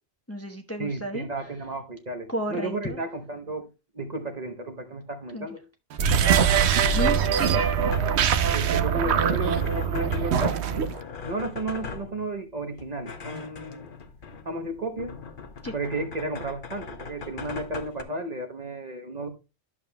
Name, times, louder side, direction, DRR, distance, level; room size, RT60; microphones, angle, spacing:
voice 1, 0.3-1.3 2.3-3.0 5.3-5.5 6.9-7.6 15.6-15.7, equal, 15° left, 0.8 m, -32 dB
voice 2, 0.8-3.7 3.9-5.6 8.5-10.6 11.2-13.9 14.4-15.1 15.7-19.3, right 2 dB, 40° right, 1.0 m, -33 dB
sound 1, 5.9-11.0, right 7 dB, 80° right, 0.9 m, -22 dB
sound 2, 7.6-18.0, left 5 dB, 55° left, 1.0 m, -41 dB
11.5 x 7.0 x 2.2 m
omnidirectional pair, 1.1 m